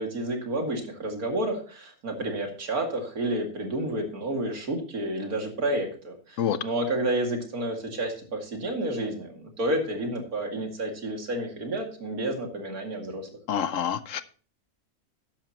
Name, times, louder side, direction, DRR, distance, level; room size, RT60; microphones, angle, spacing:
voice 1, 0.0-13.3, right 1 dB, 85° right, 3 dB, 2.8 m, -30 dB
voice 2, 13.5-14.2, left 9 dB, 65° left, 14 dB, 1.0 m, -27 dB
13.0 x 10.5 x 2.9 m, 0.40 s
omnidirectional pair, 1.5 m